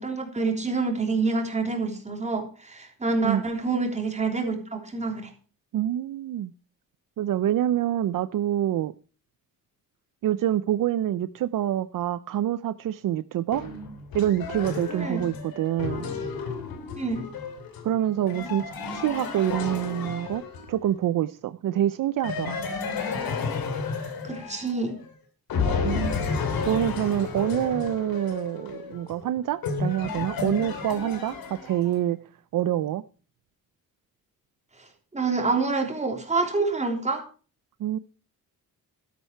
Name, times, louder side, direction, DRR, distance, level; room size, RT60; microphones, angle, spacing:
voice 1, 0.0-5.3 14.9-15.2 17.0-17.2 24.2-25.0 34.8-34.9 35.1-37.2, right 3 dB, 20° right, 3.2 m, -27 dB
voice 2, 5.7-6.5 7.2-8.9 10.2-13.6 14.1-16.1 17.8-20.4 20.7-22.6 25.8-31.3 31.6-32.2 32.5-33.0 37.8-38.0, right 11 dB, 65° right, 0.6 m, -26 dB
sound 1, 13.5-20.9 22.2-25.1 25.5-32.0, left 4 dB, 90° left, 3.0 m, -32 dB
12.5 x 10.5 x 4.5 m
cardioid pair, 135°, 34 cm